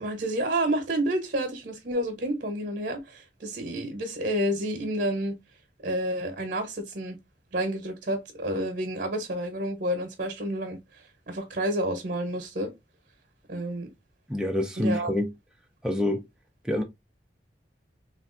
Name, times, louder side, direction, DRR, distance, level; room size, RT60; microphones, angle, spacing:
voice 1, 0.0-5.3 5.8-7.2 7.5-12.7 13.5-13.9 14.8-15.1, right 1 dB, 55° right, 0.8 m, -29 dB
voice 2, 14.3-15.3 15.8-16.2 16.6-16.8, left 1 dB, 5° right, 0.4 m, -26 dB
3.4 x 2.4 x 2.4 m
head